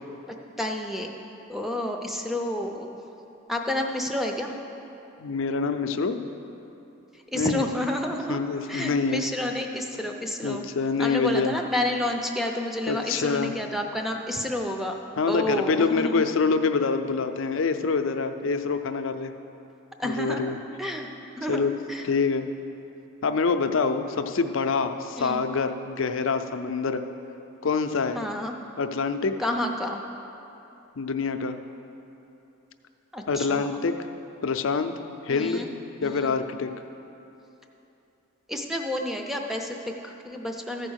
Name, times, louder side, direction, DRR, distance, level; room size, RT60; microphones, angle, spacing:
voice 1, 0.3-1.1 1.5-2.9 3.5-4.6 7.3-8.4 8.7-10.7 11.0-15.0 15.3-16.3 20.0-21.1 21.4-22.0 25.2-25.4 28.1-28.5 29.4-30.0 33.1-33.8 35.3-35.7 36.0-36.4 38.5-40.9, left 1 dB, ahead, 2 dB, 0.6 m, -30 dB
voice 2, 5.2-6.2 7.3-7.6 8.3-9.2 10.4-11.5 12.9-13.6 15.2-19.3 20.0-20.6 21.5-21.7 22.0-22.5 23.2-27.0 27.6-28.2 28.8-29.4 31.0-31.6 33.3-34.0 34.4-34.9 35.2-35.7 36.0-36.7, left 4 dB, 65° left, 8 dB, 0.5 m, -26 dB
14.0 x 4.8 x 6.3 m, 2.9 s
head